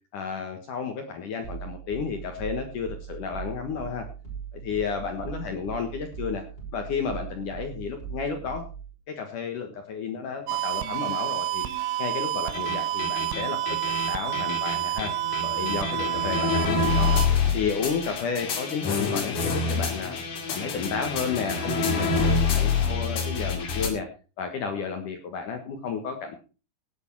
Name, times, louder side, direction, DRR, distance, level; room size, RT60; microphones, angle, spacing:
voice 1, 0.1-4.1 4.5-6.4 6.7-8.7 9.1-11.7 12.0-13.6 13.9-15.1 15.4-17.2 17.5-20.2 20.5-24.1 24.4-26.4, left 6 dB, 65° left, 5 dB, 2.1 m, -32 dB
sound 1, 1.4-8.9, right 7 dB, 10° left, 5.5 m, -39 dB
sound 2, 10.5-17.3, right 13 dB, 85° right, 3.4 m, -29 dB
sound 3, 12.5-23.9, left 5 dB, 50° left, 3.0 m, -27 dB
17.5 x 8.1 x 4.6 m, 0.34 s
omnidirectional pair, 5.7 m